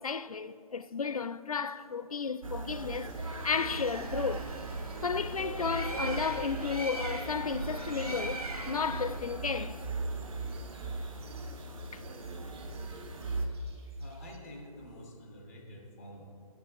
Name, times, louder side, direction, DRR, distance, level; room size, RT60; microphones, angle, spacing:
voice 1, 0.0-4.5 5.0-9.8 11.9-12.0, left 5 dB, 70° left, 0.4 m, -33 dB
sound 1, 2.4-13.5, right 2 dB, 60° right, 1.1 m, -39 dB
sound 2, 2.9-14.4, right 4 dB, 40° right, 1.5 m, -58 dB
Bird, 3.3-9.4, right 2 dB, 75° right, 1.4 m, -40 dB
voice 2, 14.0-16.2, left 1 dB, ahead, 0.3 m, -48 dB
9.7 x 6.5 x 6.6 m
figure-of-eight pair, 140°, 19 cm